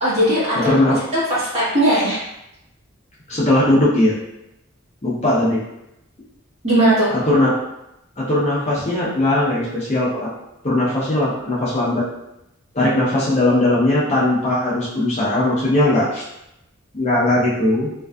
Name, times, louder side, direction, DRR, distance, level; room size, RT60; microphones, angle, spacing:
voice 1, 0.0-0.7 1.3-2.2 6.6-7.1, right 1 dB, 30° right, -10 dB, 1.0 m, -17 dB
voice 2, 0.6-1.0 3.3-4.1 5.0-5.6 7.1-7.5 8.2-10.3 10.6-12.0 12.7-16.2 16.9-17.9, left 1 dB, 35° left, -8 dB, 0.6 m, -18 dB
2.5 x 2.3 x 2.2 m, 0.86 s
head